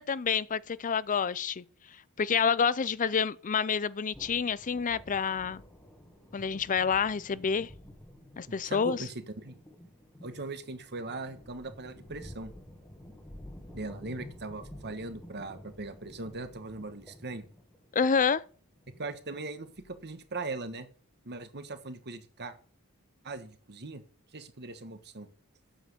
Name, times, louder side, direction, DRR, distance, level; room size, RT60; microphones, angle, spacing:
voice 1, 0.0-1.6 2.2-5.6 6.3-7.7 8.4-9.0 17.9-18.4, left 6 dB, 35° left, 0.5 m, -28 dB
sound 1, 4.1-20.3, equal, 10° left, 1.5 m, -51 dB
voice 2, 8.6-9.1 9.4-9.6 10.2-12.5 13.7-17.4 19.0-20.9 21.2-22.5 23.2-24.0 24.3-25.3, right 3 dB, 50° right, 1.4 m, -40 dB
9.0 x 7.6 x 6.6 m
head